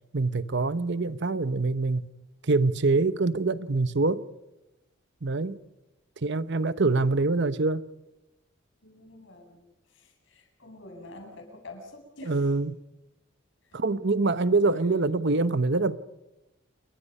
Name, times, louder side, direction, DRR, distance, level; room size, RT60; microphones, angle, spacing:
voice 1, 0.1-2.1 2.4-4.2 5.2-5.6 6.2-7.8 12.2-12.8 13.7-16.0, right 3 dB, 60° right, 0.9 m, -25 dB
voice 2, 8.8-12.5 13.7-13.8 14.6-14.7, left 2 dB, 65° left, 7.5 m, -47 dB
29.0 x 23.0 x 5.5 m
head